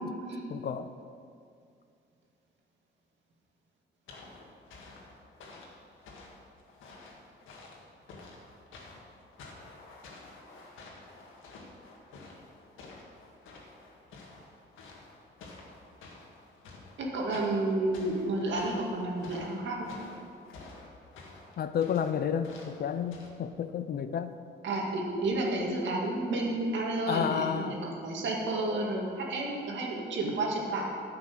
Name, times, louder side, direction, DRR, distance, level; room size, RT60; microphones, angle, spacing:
voice 1, 0.5-0.9 21.6-24.4 27.1-27.8, left 8 dB, 50° left, 11 dB, 0.5 m, -31 dB
sound 1, 4.1-23.3, left 3 dB, 85° left, 1.7 m, -50 dB
voice 2, 17.0-19.9 24.6-30.9, right 2 dB, 70° right, -1 dB, 2.1 m, -31 dB
10.0 x 6.0 x 6.7 m, 2.4 s
cardioid pair, 90°, 20 cm